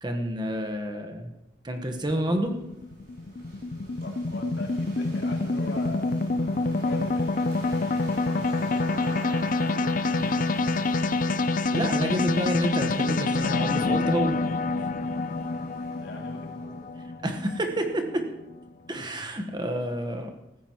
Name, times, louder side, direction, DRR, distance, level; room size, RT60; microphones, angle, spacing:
voice 1, 0.0-1.3 1.6-2.6 11.7-14.4 17.2-18.2 18.9-20.3, right 1 dB, 25° right, 5 dB, 1.2 m, -29 dB
sound 1, 2.1-18.5, left 3 dB, 45° left, 0.5 m, -27 dB
sound 2, 2.3-16.9, right 1 dB, 65° right, 6.1 m, -43 dB
voice 2, 4.0-6.2 6.8-9.7 16.0-16.8 18.9-19.0, left 2 dB, 75° left, -1 dB, 2.8 m, -41 dB
15.0 x 15.0 x 3.0 m, 0.91 s
head